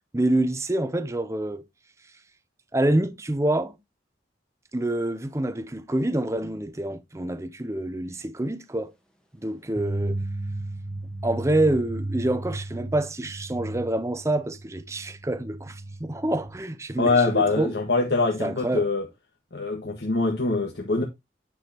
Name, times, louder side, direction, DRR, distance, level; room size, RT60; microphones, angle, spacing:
voice 1, 0.1-1.6 2.7-3.8 4.7-8.9 9.4-10.2 11.2-17.7 18.4-18.9, right 1 dB, 15° right, 0.6 m, -27 dB
sound 1, 9.7-16.6, right 2 dB, 5° left, 1.2 m, -34 dB
voice 2, 17.0-19.0 19.5-21.0, left 3 dB, 70° left, 1.5 m, -23 dB
9.5 x 6.2 x 2.9 m
head